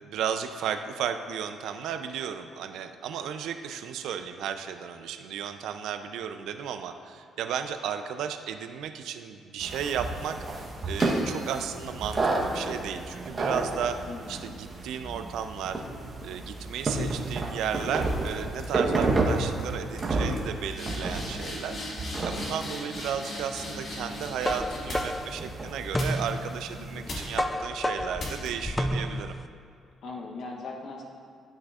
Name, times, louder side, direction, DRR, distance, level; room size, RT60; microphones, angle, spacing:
voice 1, 0.0-14.0 14.3-15.8 16.2-21.8 22.2-29.3, right 8 dB, 85° right, 8 dB, 0.4 m, -34 dB
sound 1, 9.6-27.4, right 2 dB, 35° right, 1.0 m, -32 dB
sound 2, 10.8-12.0 12.6-16.2 16.6-17.0 17.7-17.9 18.2-18.6 18.9-19.3 19.6-19.7 19.9-25.4 26.0-26.6 27.1-27.5 28.2-28.7, left 1 dB, 50° left, 1.9 m, -40 dB
voice 2, 14.1-14.5 22.5-22.7 26.8-27.1 30.0-31.0, left 3 dB, 70° left, 0 dB, 0.9 m, -40 dB
sound 3, 24.0-29.5, left 1 dB, 15° left, 0.3 m, -31 dB
12.0 x 6.2 x 2.4 m, 2.4 s
cardioid pair, 90°, 0 cm